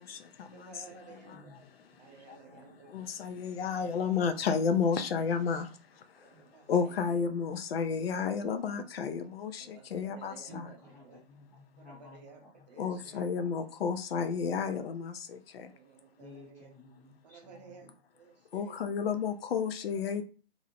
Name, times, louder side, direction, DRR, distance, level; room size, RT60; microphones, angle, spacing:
voice 1, 0.0-10.8 12.8-15.7 18.5-20.2, left 6 dB, 65° left, 0.5 m, -33 dB
voice 2, 0.5-1.5 2.0-2.9 3.8-3.9 6.1-7.2 9.6-11.2 11.8-13.6 15.6-16.7 17.2-18.8, right 6 dB, 40° right, 0.6 m, -55 dB
voice 3, 10.5-12.2 16.2-17.4, left 1 dB, 10° left, 0.5 m, -53 dB
2.6 x 2.0 x 2.8 m
hypercardioid pair, 150°, 32 cm